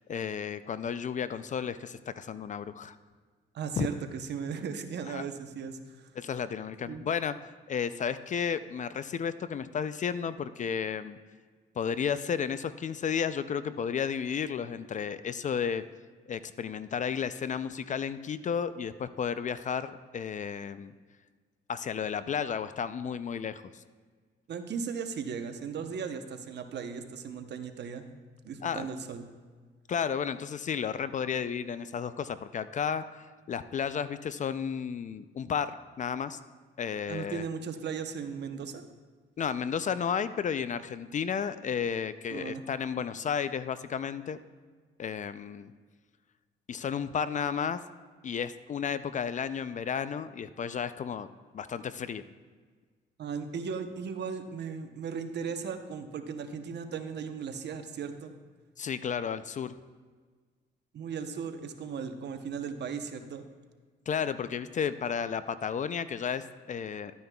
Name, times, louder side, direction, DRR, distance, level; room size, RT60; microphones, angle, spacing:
voice 1, 0.0-3.0 3.8-3.9 5.1-5.2 6.2-7.3 7.7-11.2 11.8-15.8 16.3-20.9 21.7-23.8 28.6-28.9 29.9-35.7 36.0-36.4 36.8-37.5 39.4-44.4 45.0-45.7 46.7-47.8 48.2-51.3 51.5-52.2 58.8-59.7 64.1-67.1, left 7 dB, 40° left, 13 dB, 0.4 m, -33 dB
voice 2, 3.5-6.1 6.9-7.0 24.5-28.1 28.4-29.2 37.1-38.8 42.3-42.6 53.2-58.3 60.9-63.4, right 6 dB, 60° right, 8 dB, 0.8 m, -37 dB
12.0 x 9.4 x 2.3 m, 1.5 s
cardioid pair, 90°, 20 cm